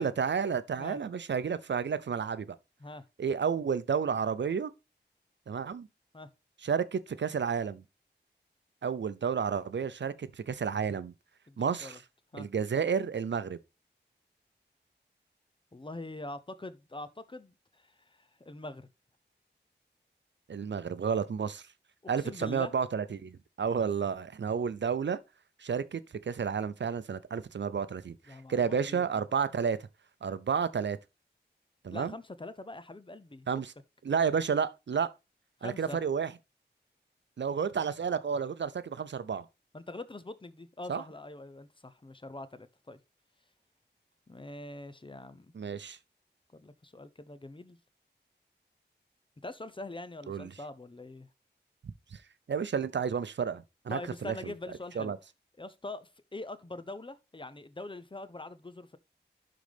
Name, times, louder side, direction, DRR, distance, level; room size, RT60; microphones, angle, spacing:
voice 1, 0.0-2.6 3.2-4.7 5.5-5.9 6.6-7.8 8.8-11.1 11.6-12.0 12.3-13.6 20.5-21.6 22.1-25.2 25.6-29.8 30.2-31.0 31.8-32.1 33.5-33.7 34.0-35.1 35.6-36.3 37.4-39.4 40.9-41.0 45.5-46.0 50.3-50.5 52.1-52.2 52.5-54.5 55.0-55.2, right 6 dB, 80° right, 0.5 m, -31 dB
voice 2, 11.5-12.0 12.3-12.5 15.7-17.9 18.2-18.9 22.2-22.7 28.3-29.0 31.9-33.5 35.6-36.0 39.7-43.0 44.3-45.5 46.5-47.8 49.4-51.3 53.9-55.1 55.6-59.0, left 2 dB, 30° left, 0.7 m, -43 dB
11.5 x 3.9 x 3.4 m
wide cardioid pair, 70°, 18 cm